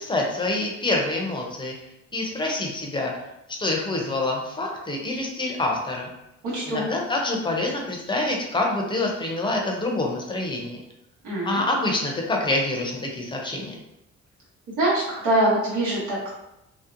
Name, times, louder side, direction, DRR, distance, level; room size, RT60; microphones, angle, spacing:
voice 1, 0.0-1.7 2.1-3.1 3.6-6.1 6.7-10.8 11.4-13.8, left 2 dB, 15° left, 0 dB, 0.6 m, -26 dB
voice 2, 6.5-6.9 11.2-11.6 14.8-16.4, right 1 dB, 85° right, -7 dB, 1.0 m, -24 dB
2.8 x 2.0 x 2.5 m, 0.87 s
cardioid pair, 90°, 30 cm